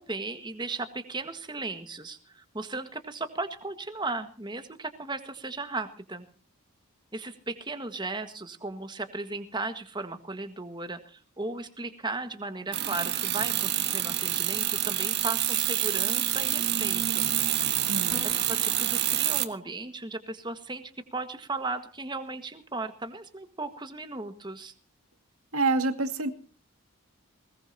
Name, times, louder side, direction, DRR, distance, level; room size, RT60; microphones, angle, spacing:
voice 1, 0.0-6.3 7.1-17.3 18.2-20.8 21.1-24.7, right 3 dB, 20° right, 8 dB, 1.6 m, -36 dB
sound 1, 12.7-19.5, right 12 dB, 50° right, 1.5 m, -27 dB
voice 2, 17.9-18.3 25.5-26.3, right 3 dB, 85° right, 8 dB, 2.2 m, -27 dB
sound 2, 18.1-18.7, left 1 dB, 5° left, 1.5 m, -42 dB
20.5 x 20.5 x 2.8 m, 0.39 s
head